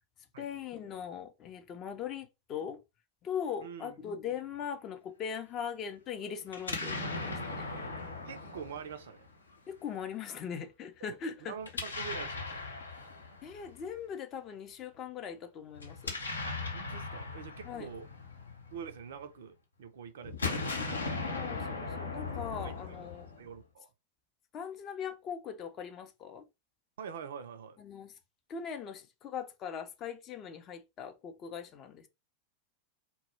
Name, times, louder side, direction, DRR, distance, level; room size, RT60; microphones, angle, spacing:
voice 1, 0.4-2.8 3.2-7.6 9.7-11.6 13.4-16.1 17.6-17.9 21.3-23.3 24.5-26.4 27.8-28.1 28.5-32.1, left 7 dB, 30° left, 0.4 m, -40 dB
voice 2, 3.6-3.9 8.3-9.3 11.0-11.1 11.4-12.8 16.5-18.1 18.7-20.6 22.6-22.8 23.2-23.9 27.0-27.8, right 7 dB, 60° right, 0.3 m, -45 dB
Explosion, 6.5-9.5 11.6-13.9 15.7-19.2 20.2-23.6, left 3 dB, 75° left, 0.6 m, -38 dB
2.1 x 2.0 x 3.1 m
figure-of-eight pair, 90°, 0 cm